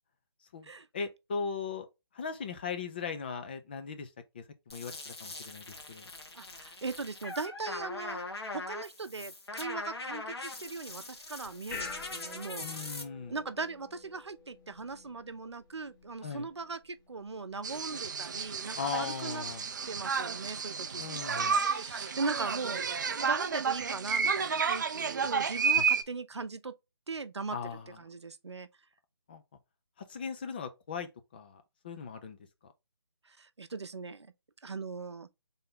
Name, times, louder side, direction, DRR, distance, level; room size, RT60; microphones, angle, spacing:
voice 1, 0.5-1.9 2.1-6.1 12.6-13.4 16.2-16.5 18.8-19.7 21.0-21.6 25.7-25.9 27.5-28.0 29.3-29.4 30.1-32.4, left 6 dB, 20° left, 0.4 m, -39 dB
sound 1, 4.7-13.0, left 2 dB, 70° left, 1.4 m, -42 dB
voice 2, 6.3-8.2 8.5-13.0 13.3-19.4 19.9-21.0 21.3-22.8 23.1-26.7 27.1-27.6 28.0-28.7 33.3-34.3 34.6-35.3, right 4 dB, 85° right, 0.6 m, -39 dB
sound 2, 10.7-24.2, left 5 dB, 45° left, 1.3 m, -52 dB
sound 3, 17.6-26.0, right 6 dB, 45° right, 0.4 m, -31 dB
3.4 x 2.8 x 3.7 m
figure-of-eight pair, 155°, 14 cm